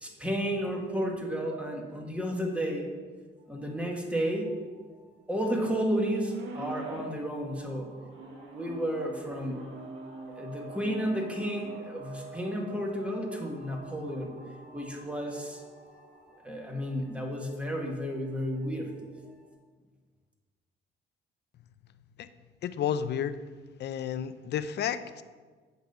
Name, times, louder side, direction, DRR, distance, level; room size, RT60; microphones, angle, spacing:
voice 1, 0.0-2.9 3.5-4.5 5.3-7.9 8.5-9.6 10.4-14.3 14.7-15.6 16.4-18.9, equal, 5° right, 0 dB, 1.5 m, -32 dB
sound 1, 3.4-19.5, right 3 dB, 55° right, 2.8 m, -51 dB
sound 2, 6.3-7.2 8.1-11.8, right 3 dB, 80° right, 1.3 m, -44 dB
voice 2, 22.6-23.4 23.8-25.2, left 9 dB, 60° left, 12 dB, 0.5 m, -31 dB
8.1 x 4.0 x 6.7 m, 1.5 s
cardioid pair, 90°, 20 cm